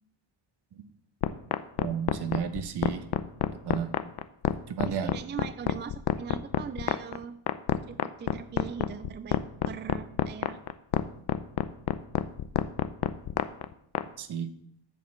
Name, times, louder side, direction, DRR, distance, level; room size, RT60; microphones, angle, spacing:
sound 1, 1.2-14.0, left 11 dB, 55° left, 0.7 m, -27 dB
voice 1, 1.8-3.0 3.6-3.9 4.7-5.1 14.2-14.5, right 8 dB, 55° right, 10 dB, 1.1 m, -32 dB
voice 2, 4.8-7.4 7.8-10.6, right 7 dB, 25° right, 12 dB, 0.4 m, -40 dB
8.1 x 6.4 x 7.2 m, 0.70 s
cardioid pair, 125°, 48 cm